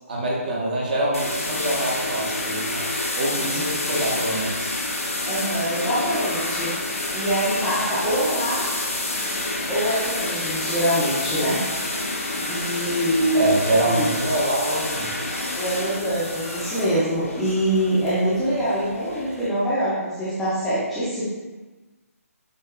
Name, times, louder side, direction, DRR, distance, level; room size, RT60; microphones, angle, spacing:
voice 1, 0.1-2.8 3.1-4.7 13.3-15.4, right 1 dB, 35° right, -4 dB, 1.0 m, -25 dB
sound 1, 1.1-19.5, left 2 dB, 60° left, 0.9 m, -29 dB
voice 2, 3.3-3.6 3.9-4.0 5.2-8.6 9.7-11.6 12.4-13.6 13.8-14.1 15.5-21.2, equal, ahead, -13 dB, 0.7 m, -24 dB
8.0 x 2.7 x 2.4 m, 1.2 s
figure-of-eight pair, 145°, 8 cm